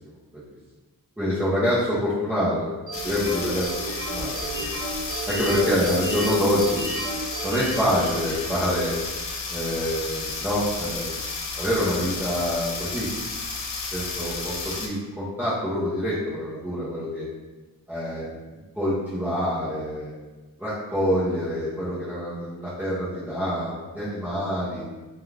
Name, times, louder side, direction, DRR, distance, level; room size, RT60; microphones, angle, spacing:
voice 1, 1.2-2.7 3.0-4.8 5.3-6.8 7.4-8.9 9.5-11.2 11.5-13.1 13.9-17.3 17.9-18.2 18.8-20.1 20.6-24.8, equal, 5° right, -11 dB, 0.7 m, -26 dB
sound 1, 2.9-14.9, left 3 dB, 90° left, 0.6 m, -32 dB
sound 2, 2.9-8.6, right 2 dB, 60° right, 0.7 m, -33 dB
2.5 x 2.3 x 3.2 m, 1.2 s
wide cardioid pair, 105°, 42 cm